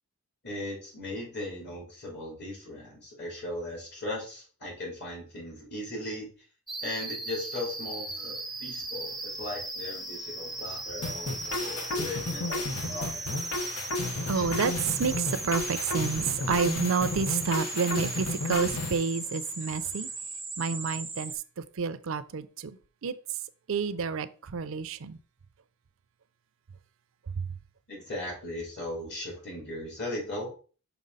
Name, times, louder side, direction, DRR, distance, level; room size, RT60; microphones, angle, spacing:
voice 1, 0.4-6.3 6.8-13.3 14.3-14.4 27.9-30.5, left 1 dB, 50° left, 3.1 m, -38 dB
sound 1, 6.7-21.3, right 2 dB, ahead, 0.6 m, -38 dB
sound 2, 11.0-19.0, left 2 dB, 85° left, 1.2 m, -33 dB
voice 2, 11.4-12.0 12.8-20.1 20.6-23.4 23.7-25.2 27.3-27.5, right 5 dB, 60° right, 0.5 m, -30 dB
5.9 x 5.1 x 4.0 m
head